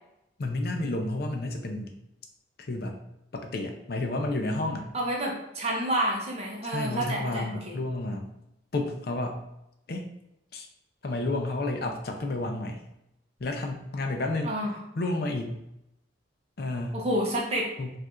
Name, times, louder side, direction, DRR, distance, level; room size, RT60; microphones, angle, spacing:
voice 1, 0.4-1.9 2.6-3.0 3.3-4.9 6.6-8.3 8.7-9.4 9.9-10.1 10.5-10.7 11.0-12.8 13.4-14.5 15.0-15.6 16.6-17.0 17.8-17.9, left 2 dB, 50° left, 4 dB, 0.4 m, -31 dB
voice 2, 4.9-7.8 14.4-14.8 16.9-17.7, right 1 dB, 35° right, -1 dB, 0.6 m, -29 dB
4.4 x 2.5 x 2.4 m, 0.85 s
head